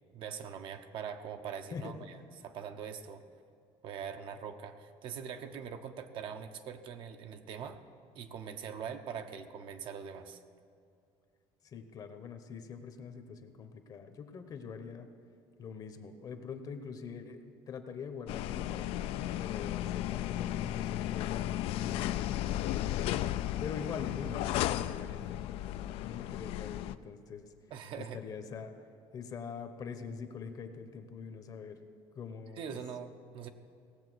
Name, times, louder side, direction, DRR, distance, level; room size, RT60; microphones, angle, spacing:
voice 1, 0.1-3.2 3.8-7.8 8.1-10.4 27.7-28.2 32.6-33.5, right 7 dB, 55° right, 7 dB, 0.8 m, -42 dB
voice 2, 1.7-2.2 11.6-15.1 15.6-23.1 23.6-27.5 28.0-28.9 29.1-31.8 32.1-32.8, left 6 dB, 35° left, 8 dB, 0.9 m, -44 dB
sound 1, 18.3-26.9, left 13 dB, 65° left, 0.4 m, -34 dB
17.5 x 7.5 x 6.2 m, 2.4 s
cardioid pair, 150°, 11 cm